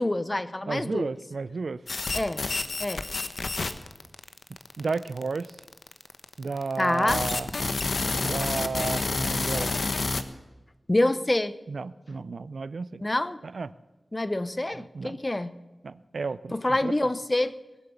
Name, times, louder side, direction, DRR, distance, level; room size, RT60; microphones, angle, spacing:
voice 1, 0.0-1.1 2.1-2.4 2.8-3.0 6.8-7.2 10.9-11.5 13.0-13.4 14.1-15.5 16.5-17.6, left 1 dB, 25° left, 14 dB, 0.7 m, -26 dB
voice 2, 0.7-1.8 4.5-5.6 6.4-7.5 8.2-9.7 11.7-13.0 13.4-13.7 14.8-15.2 15.8-16.9, right 4 dB, 75° right, 17 dB, 0.4 m, -33 dB
sound 1, 1.9-10.2, left 3 dB, 70° left, 0.9 m, -29 dB
20.5 x 7.8 x 7.1 m, 1.1 s
wide cardioid pair, 95°, 0 cm